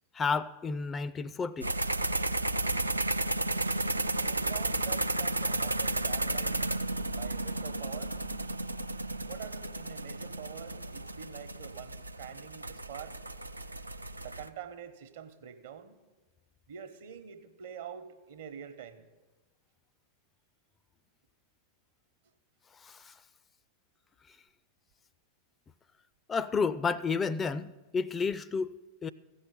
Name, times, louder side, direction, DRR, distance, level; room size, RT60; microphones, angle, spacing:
voice 1, 0.1-1.7 22.8-23.2 26.3-29.1, left 5 dB, 20° left, 0.4 m, -31 dB
sound 1, 1.6-14.5, right 2 dB, 85° right, 0.4 m, -33 dB
voice 2, 4.2-6.8 7.1-8.2 9.3-13.2 14.2-16.0 16.7-19.1, right 8 dB, 55° right, 1.0 m, -45 dB
15.5 x 5.5 x 8.4 m
figure-of-eight pair, 90°, 0 cm